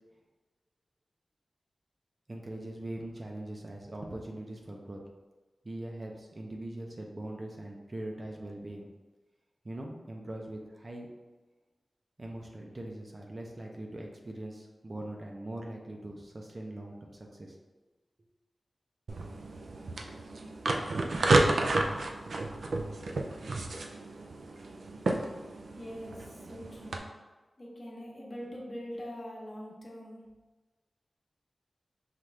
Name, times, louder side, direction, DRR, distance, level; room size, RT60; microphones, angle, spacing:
voice 1, 2.3-5.0 5.6-8.9 9.6-11.1 12.2-17.6, right 1 dB, 35° right, 0 dB, 0.6 m, -41 dB
sound 1, 19.1-27.0, right 2 dB, 90° right, 0.4 m, -31 dB
voice 2, 25.8-27.1 27.6-30.2, equal, 35° left, -3 dB, 1.0 m, -43 dB
5.7 x 2.5 x 3.2 m, 1.2 s
wide cardioid pair, 100°, 0 cm